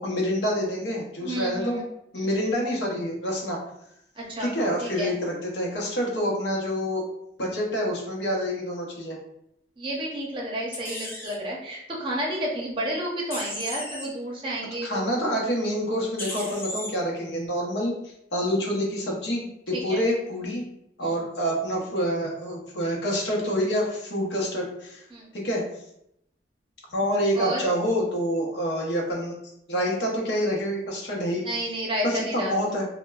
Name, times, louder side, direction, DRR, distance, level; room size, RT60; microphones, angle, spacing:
voice 1, 0.0-1.8 2.1-3.6 4.4-7.0 7.4-9.2 14.8-20.6 21.0-25.0 25.3-25.6 26.9-29.3 29.7-31.4 32.0-32.8, equal, 85° left, -1 dB, 0.7 m, -27 dB
voice 2, 1.2-1.9 2.1-2.3 4.2-4.5 4.8-5.1 9.8-15.0 19.7-20.1 21.0-21.1 25.1-25.3 27.3-27.6 31.4-32.8, right 1 dB, 30° right, -3 dB, 0.6 m, -31 dB
sound 1, 10.7-11.3 13.3-14.1 16.2-16.9, left 1 dB, 15° left, 0.5 m, -35 dB
3.0 x 2.1 x 2.3 m, 0.77 s
head